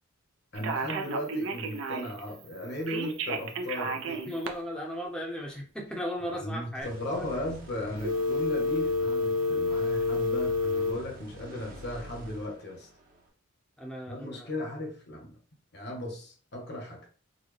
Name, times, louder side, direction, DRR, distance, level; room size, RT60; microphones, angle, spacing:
voice 1, 0.5-4.3 6.2-12.9 14.1-15.4 15.7-17.1, left 1 dB, 55° left, 1.0 m, -36 dB
Telephone, 0.5-2.2 2.9-4.5 8.0-10.9, left 2 dB, 65° right, 0.5 m, -29 dB
voice 2, 4.3-6.9 7.1-7.5 13.8-14.5, equal, 5° left, 0.7 m, -36 dB
sound 1, 6.8-13.3, equal, 45° right, 0.9 m, -47 dB
4.0 x 2.2 x 3.2 m
head